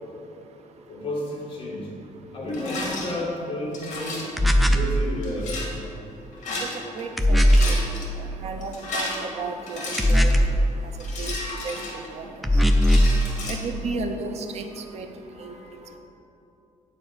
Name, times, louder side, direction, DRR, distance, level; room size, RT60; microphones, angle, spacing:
voice 1, 0.9-1.9 2.3-4.3 4.6-5.6 14.8-14.9 15.3-16.0, left 1 dB, 40° left, -4 dB, 1.8 m, -32 dB
Rattle, 2.5-3.1 3.7-4.4 5.2-5.7 6.3-7.0 7.3-8.1 8.6-10.4 11.0-12.3 12.7-13.6, left 2 dB, 60° left, 1.7 m, -33 dB
sound 1, 4.4-4.9 7.2-7.8 10.0-10.6 12.4-13.2, equal, ahead, 0.4 m, -18 dB
voice 2, 6.9-7.6 8.2-10.4 11.2-11.3 11.6-11.8 12.1-12.2 13.5-14.6 14.9-15.1 15.4-15.5, right 3 dB, 50° right, 5 dB, 0.7 m, -33 dB
9.6 x 4.4 x 6.9 m, 2.9 s
cardioid pair, 170°, 14 cm